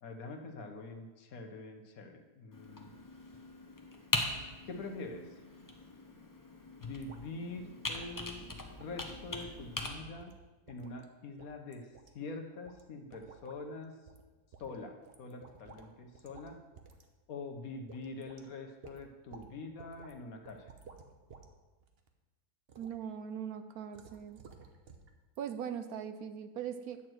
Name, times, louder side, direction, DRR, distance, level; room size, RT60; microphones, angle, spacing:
voice 1, 0.0-2.9 4.6-5.3 6.8-8.5 8.8-10.3 10.7-11.9 12.1-13.9 14.6-16.6 17.3-20.7, left 3 dB, 60° left, 4 dB, 1.3 m, -44 dB
Computer keyboard, 2.5-9.9, left 2 dB, 20° left, 0.6 m, -41 dB
sound 1, 7.0-7.2 7.5-7.6 8.0-8.3 8.8-9.0 9.3-9.5 9.8-9.9 10.2-11.0 11.4-12.1 12.6-12.8 13.1-13.6 14.1-14.2 14.5-15.9 16.1-16.5 16.8-17.1 17.4-17.5 17.9-18.4 18.8-19.5 19.8-20.1 20.5-21.5 21.8-22.1 22.7-23.0 23.9-25.1 25.4-25.5, right 5 dB, 45° right, 0.9 m, -55 dB
voice 2, 22.8-24.4 25.4-27.0, right 8 dB, 70° right, 9 dB, 1.1 m, -40 dB
10.0 x 4.5 x 7.8 m, 1.2 s
omnidirectional pair, 1.7 m